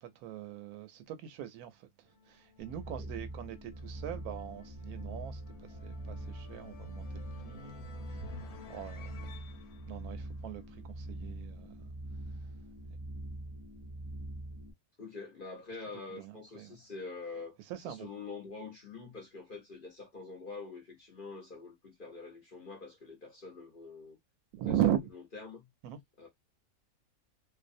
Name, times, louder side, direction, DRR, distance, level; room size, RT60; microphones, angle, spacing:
voice 1, 0.0-9.3 9.9-11.9 12.9-13.0 16.1-16.8 17.7-18.1 24.5-25.1 25.8-26.0, right 11 dB, 80° right, 1.0 m, -39 dB
sound 1, 2.1-11.1, left 8 dB, 75° left, 1.1 m, -54 dB
sound 2, 2.6-14.7, right 1 dB, 30° right, 0.4 m, -43 dB
voice 2, 15.0-17.6 17.8-24.2 24.7-24.8 25.1-25.7 26.2-26.3, left 4 dB, 45° left, 0.8 m, -45 dB
2.6 x 2.3 x 2.5 m
omnidirectional pair, 1.6 m